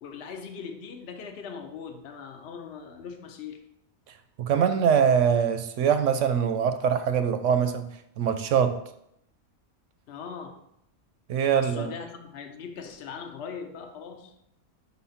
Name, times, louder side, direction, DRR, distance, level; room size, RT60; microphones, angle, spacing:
voice 1, 0.0-3.6 10.1-10.6 11.5-14.3, left 6 dB, 55° left, 4 dB, 0.9 m, -40 dB
voice 2, 4.4-7.9 8.2-8.8 11.3-11.9, right 7 dB, 65° right, 9 dB, 0.8 m, -23 dB
5.5 x 4.2 x 5.6 m, 0.76 s
omnidirectional pair, 1.5 m